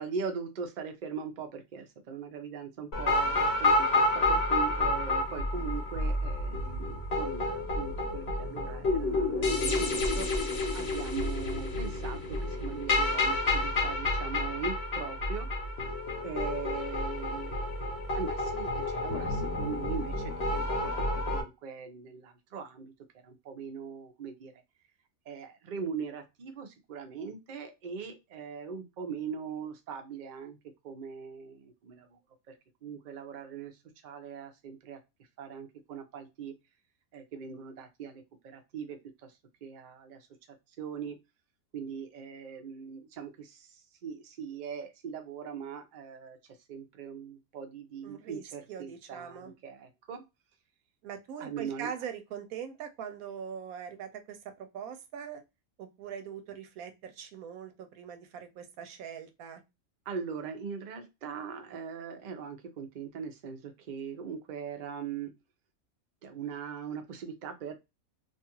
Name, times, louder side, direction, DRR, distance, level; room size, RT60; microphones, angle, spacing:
voice 1, 0.0-15.5 16.2-17.6 18.1-22.9 23.2-24.5 25.3-30.6 30.8-32.2 32.5-32.6 32.8-35.0 35.4-36.5 37.1-39.0 39.6-40.3 40.8-41.2 41.7-46.4 46.7-50.2 51.4-51.9 60.1-65.3 66.2-67.7, right 6 dB, 55° right, 5 dB, 0.5 m, -40 dB
sound 1, 2.9-21.4, left 2 dB, 55° left, 0.9 m, -29 dB
voice 2, 48.0-48.4 48.7-49.5 51.0-55.4 55.8-59.6, right 8 dB, 90° right, 7 dB, 1.1 m, -42 dB
2.6 x 2.4 x 2.8 m, 0.23 s
omnidirectional pair, 1.5 m